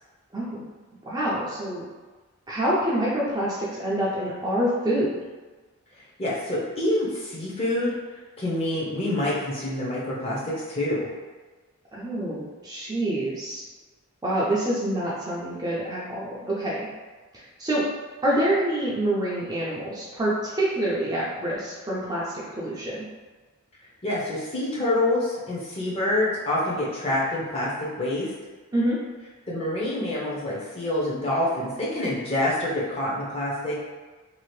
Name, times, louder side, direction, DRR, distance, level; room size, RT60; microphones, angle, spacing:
voice 1, 0.3-0.6 1.0-1.8 2.5-5.1 11.9-13.6 14.2-16.9 17.3-17.8 18.2-23.0 28.7-29.0, right 1 dB, 15° right, -7 dB, 0.5 m, -26 dB
voice 2, 6.2-7.9 8.4-11.1 24.0-28.3 29.5-33.7, left 1 dB, 25° left, -6 dB, 0.7 m, -26 dB
2.8 x 2.5 x 3.1 m, 1.3 s
head